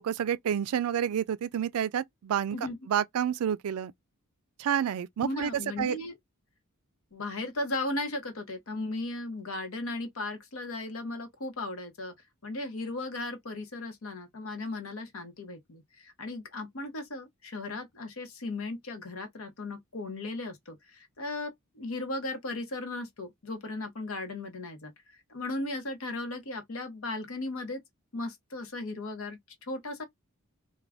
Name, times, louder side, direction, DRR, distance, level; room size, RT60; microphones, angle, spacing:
voice 1, 0.0-2.6 2.9-3.9 4.6-5.5 5.8-6.0, right 9 dB, 85° right, 0.4 m, -29 dB
voice 2, 5.2-6.1 7.1-12.1 12.4-24.9 25.3-27.8 28.1-29.4 29.7-30.0, left 2 dB, 65° left, 0.9 m, -36 dB
2.4 x 2.2 x 3.3 m
head